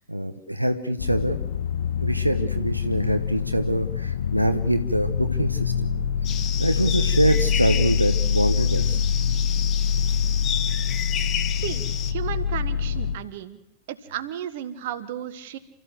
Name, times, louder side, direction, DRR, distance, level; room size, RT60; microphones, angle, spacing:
voice 1, 0.1-1.4 2.0-5.9 6.6-9.0, right 1 dB, 85° right, 8 dB, 1.1 m, -24 dB
sound 1, 1.0-13.1, left 7 dB, 65° left, 2.0 m, -25 dB
sound 2, 6.2-12.1, left 9 dB, 30° left, 1.4 m, -32 dB
voice 2, 11.6-13.6 13.9-15.6, right 11 dB, 55° right, 11 dB, 1.5 m, -34 dB
29.0 x 14.0 x 7.8 m, 0.82 s
figure-of-eight pair, 90°, 0 cm